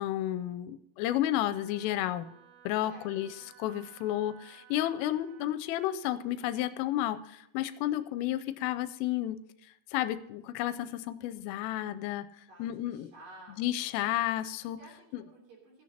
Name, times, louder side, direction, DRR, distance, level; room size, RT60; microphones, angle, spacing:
voice 1, 0.0-2.3 2.7-3.3 3.6-9.4 9.9-12.3 12.6-13.1 13.6-14.8 15.1-15.2, left 13 dB, 85° left, 14 dB, 3.1 m, -32 dB
Wind instrument woodwind instrument, 1.4-5.6, right 10 dB, 80° right, 2.0 m, -57 dB
voice 2, 2.9-3.4 12.5-14.2 14.8-15.8, right 1 dB, 45° right, -1 dB, 4.2 m, -54 dB
16.0 x 12.5 x 2.8 m, 0.79 s
omnidirectional pair, 5.8 m